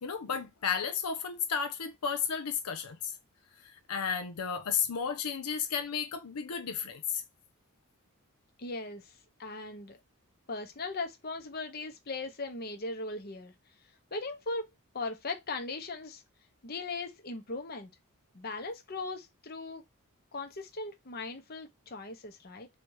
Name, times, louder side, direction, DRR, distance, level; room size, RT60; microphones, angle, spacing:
voice 1, 0.0-3.1 3.6-7.2, left 7 dB, 90° left, 0.7 m, -33 dB
voice 2, 8.6-9.1 9.4-10.0 10.5-13.5 14.1-14.7 14.9-16.2 16.6-17.9 18.3-19.8 20.3-22.7, left 3 dB, 45° left, 0.9 m, -38 dB
3.4 x 2.9 x 4.7 m
head